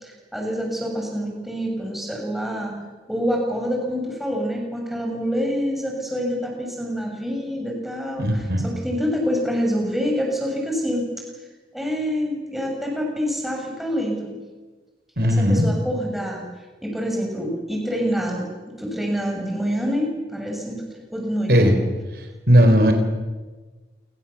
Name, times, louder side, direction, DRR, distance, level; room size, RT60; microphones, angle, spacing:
voice 1, 0.0-2.7 3.1-11.1 11.7-14.3 15.2-16.4 16.8-20.8 21.1-21.7, equal, ahead, 0 dB, 6.7 m, -26 dB
voice 2, 8.2-8.6 15.2-15.7 21.5-21.8 22.1-22.9, equal, 60° right, 5 dB, 4.1 m, -17 dB
27.5 x 25.0 x 7.2 m, 1.3 s
head